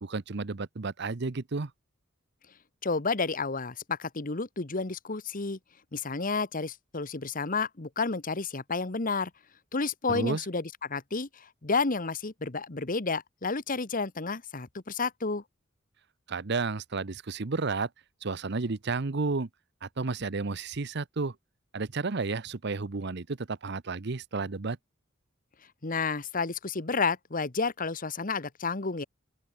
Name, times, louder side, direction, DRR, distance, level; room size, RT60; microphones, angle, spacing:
voice 1, 0.0-1.7 10.1-10.4 16.3-17.9 18.2-19.5 19.8-21.3 21.7-24.8, right 3 dB, 60° right, 0.8 m, -32 dB
voice 2, 2.8-5.6 5.9-9.3 9.7-15.4 25.8-29.0, left 4 dB, 45° left, 1.3 m, -31 dB
open air
head